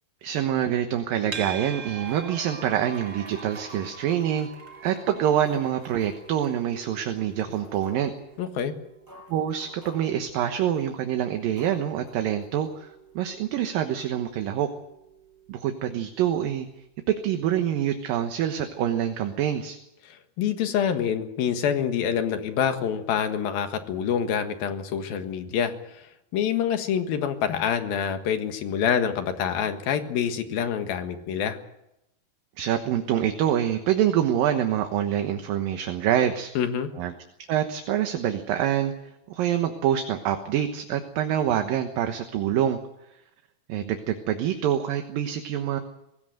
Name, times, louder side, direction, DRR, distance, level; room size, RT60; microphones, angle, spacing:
voice 1, 0.2-4.5 4.8-8.1 9.3-12.9 13.2-14.7 15.5-16.7 17.1-19.8 32.6-36.5 37.0-37.1 37.5-38.9 39.3-42.8 43.7-45.8, right 10 dB, 65° right, 6 dB, 2.6 m, -26 dB
sound 1, 1.3-18.5, right 6 dB, 45° right, 1.6 m, -46 dB
sound 2, 1.5-8.6, right 5 dB, 30° right, 2.2 m, -47 dB
sound 3, 2.1-2.4 3.3-4.2 4.8-5.0 5.5-6.3 6.8-6.9 7.5-8.2 8.8-8.9 9.1-10.2 10.8-11.0 11.6-12.8 13.1-13.2, equal, 5° right, 6.8 m, -51 dB
voice 2, 8.4-8.7 20.0-26.1 26.3-31.6 36.5-36.9, left 8 dB, 65° left, 7 dB, 3.2 m, -26 dB
23.5 x 16.5 x 8.0 m, 0.86 s
omnidirectional pair, 4.8 m